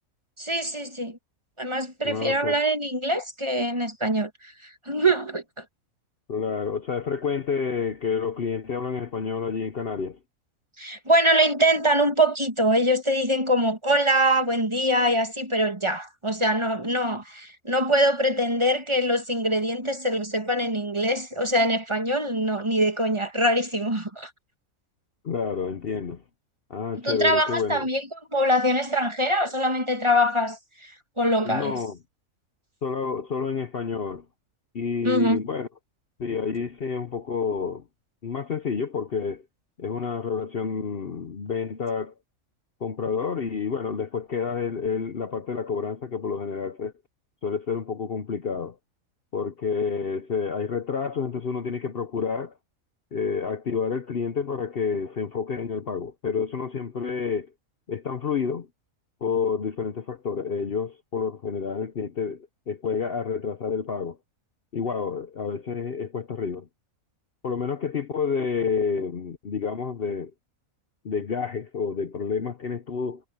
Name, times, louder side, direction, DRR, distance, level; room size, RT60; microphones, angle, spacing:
voice 1, 0.4-1.2 1.6-5.6 10.8-24.3 27.0-31.8 35.0-35.4, equal, 20° right, 1.6 m, -23 dB
voice 2, 2.0-2.6 6.3-10.2 25.2-26.2 26.7-27.9 31.4-32.0 32.8-34.2 34.7-35.7 36.2-37.8 38.2-39.4 39.8-42.1 42.8-46.9 47.4-48.8 49.3-52.5 53.1-57.5 57.9-58.7 59.2-64.2 64.7-66.7 67.4-70.3 71.0-73.2, left 6 dB, 50° left, 1.0 m, -29 dB
omnidirectional pair, 1.5 m